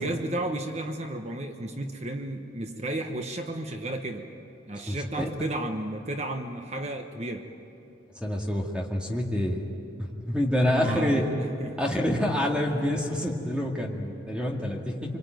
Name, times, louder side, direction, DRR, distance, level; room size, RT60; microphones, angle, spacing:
voice 1, 0.0-4.2 4.7-7.5 10.8-11.8, right 1 dB, 35° right, 5 dB, 1.1 m, -33 dB
voice 2, 4.9-5.3 8.2-9.6 10.0-11.3 11.8-15.2, left 1 dB, 5° right, 0 dB, 2.1 m, -27 dB
25.5 x 24.5 x 9.3 m, 2.8 s
head